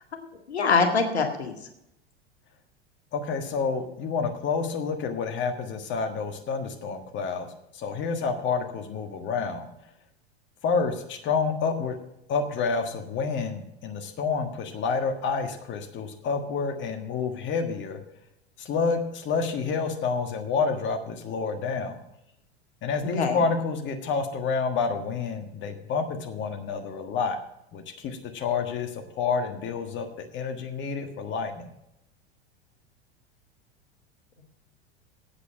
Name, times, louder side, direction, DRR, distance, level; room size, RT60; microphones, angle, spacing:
voice 1, 0.5-1.5 23.0-23.4, left 4 dB, 80° left, 4 dB, 1.9 m, -24 dB
voice 2, 3.1-9.7 10.6-12.0 12.3-18.0 18.6-22.0 22.8-27.4 27.7-30.1 30.3-31.7, left 5 dB, 35° left, 6 dB, 1.5 m, -29 dB
8.6 x 8.3 x 7.4 m, 0.83 s
hypercardioid pair, 90°, 32 cm